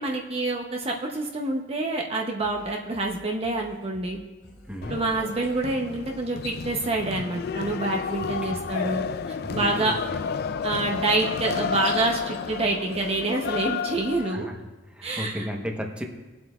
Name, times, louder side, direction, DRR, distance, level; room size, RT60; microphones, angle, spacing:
voice 1, 0.0-4.2 4.9-9.0 9.5-10.0 10.6-14.5 15.0-15.5, right 2 dB, 30° right, 0 dB, 0.7 m, -27 dB
sound 1, 2.4-14.4, equal, 90° left, 2.0 m, -52 dB
sound 2, 4.8-14.3, left 6 dB, 55° left, 0.4 m, -31 dB
voice 2, 8.2-8.7 9.4-10.2 14.2-14.6 14.9-16.0, equal, 5° right, 2 dB, 0.9 m, -35 dB
20.5 x 7.8 x 2.3 m, 1.2 s
head